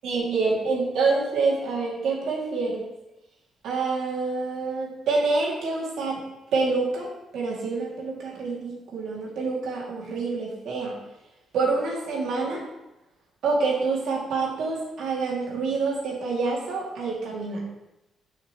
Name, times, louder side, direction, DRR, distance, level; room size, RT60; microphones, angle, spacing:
voice 1, 0.0-2.9 3.6-6.2 6.5-11.0 11.5-12.6 13.4-17.6, right 4 dB, 75° right, -4 dB, 2.5 m, -27 dB
11.5 x 5.8 x 3.1 m, 0.95 s
cardioid pair, 180°, 0 cm